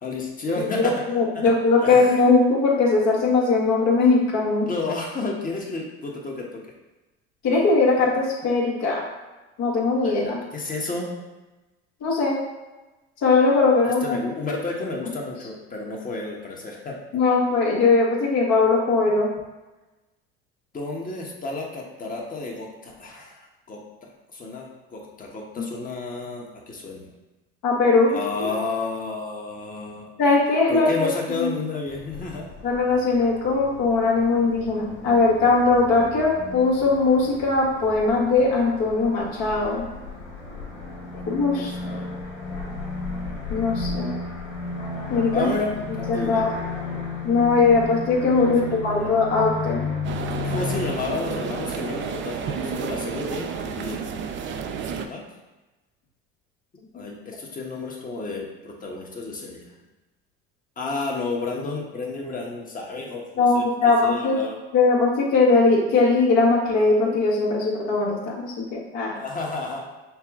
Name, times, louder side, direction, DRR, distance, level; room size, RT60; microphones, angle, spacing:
voice 1, 0.0-1.5 1.8-2.1 4.6-6.6 10.0-11.1 13.8-17.0 20.7-23.4 23.7-23.8 24.3-27.1 28.1-30.1 30.7-32.5 41.1-41.2 41.5-42.1 45.3-46.5 48.4-49.1 50.4-54.0 55.1-55.2 56.9-59.7 60.8-63.6 64.0-64.6 69.1-69.8, left 3 dB, 25° left, -1 dB, 1.1 m, -31 dB
voice 2, 0.8-4.7 7.4-9.0 9.6-10.4 12.0-12.4 13.2-14.2 17.1-19.3 25.6-25.7 27.6-28.1 28.4-28.5 30.2-31.1 31.4-31.5 32.6-39.8 41.3-41.7 43.5-44.1 45.1-45.5 46.1-46.5 47.2-49.8 63.4-64.4 64.7-69.1, left 3 dB, 60° left, -3 dB, 1.4 m, -20 dB
sound 1, 31.9-50.9, left 3 dB, 80° left, 1.4 m, -34 dB
sound 2, 50.0-55.1, right 6 dB, 40° right, 0.5 m, -31 dB
5.7 x 2.2 x 3.6 m, 1.1 s
hypercardioid pair, 80°, 31 cm